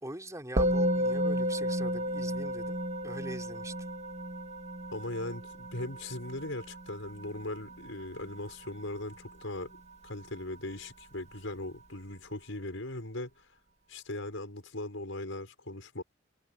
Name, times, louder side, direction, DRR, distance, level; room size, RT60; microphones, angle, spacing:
voice 1, 0.0-3.7, right 1 dB, 15° right, 3.7 m, -43 dB
Musical instrument, 0.6-10.1, equal, 35° right, 1.5 m, -33 dB
voice 2, 4.9-13.3 13.9-16.0, left 1 dB, 75° left, 5.3 m, -39 dB
head